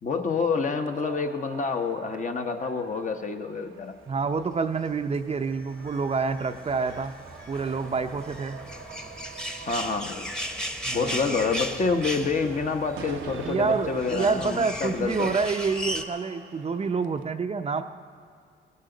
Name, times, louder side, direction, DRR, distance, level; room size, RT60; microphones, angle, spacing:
voice 1, 0.0-3.9 9.6-10.3 10.9-15.4, left 4 dB, 40° left, 5 dB, 1.1 m, -28 dB
sound 1, 0.6-17.2, right 9 dB, 75° right, 0.7 m, -46 dB
voice 2, 4.1-7.1 7.5-8.6 10.8-11.5 13.4-17.8, right 4 dB, 30° right, 7 dB, 0.6 m, -28 dB
sound 2, 4.9-16.0, equal, 5° left, 1.0 m, -37 dB
sound 3, 5.5-11.5, right 1 dB, 70° left, 3.2 m, -54 dB
17.5 x 16.5 x 3.9 m, 2.2 s
cardioid pair, 90°, 20 cm